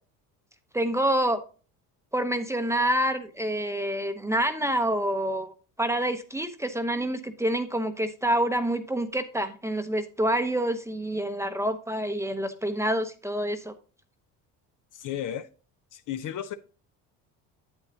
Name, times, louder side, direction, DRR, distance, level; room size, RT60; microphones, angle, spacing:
voice 1, 0.7-1.4 2.1-13.7, right 1 dB, 5° right, 0.8 m, -27 dB
voice 2, 14.9-15.5 15.9-16.6, left 10 dB, 50° left, 0.8 m, -33 dB
8.6 x 8.1 x 2.8 m
supercardioid pair, 85°, 40 cm